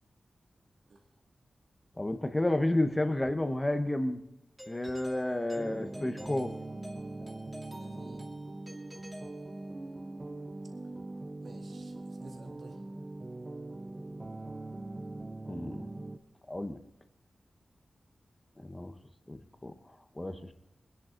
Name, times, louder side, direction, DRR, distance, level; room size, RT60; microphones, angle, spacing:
voice 1, 2.0-4.2 4.7-6.5 15.5-15.9 16.5-16.8 18.6-18.9 19.3-19.7 20.2-20.5, left 1 dB, 15° left, 8 dB, 1.0 m, -31 dB
Doorbell, 4.6-10.0, equal, 5° right, 2.5 m, -50 dB
sound 1, 5.5-16.2, right 2 dB, 25° right, 0.6 m, -42 dB
voice 2, 7.7-8.2 11.4-12.8, right 3 dB, 70° right, 2 dB, 2.0 m, -53 dB
23.5 x 10.5 x 3.9 m, 0.90 s
wide cardioid pair, 165°, 0 cm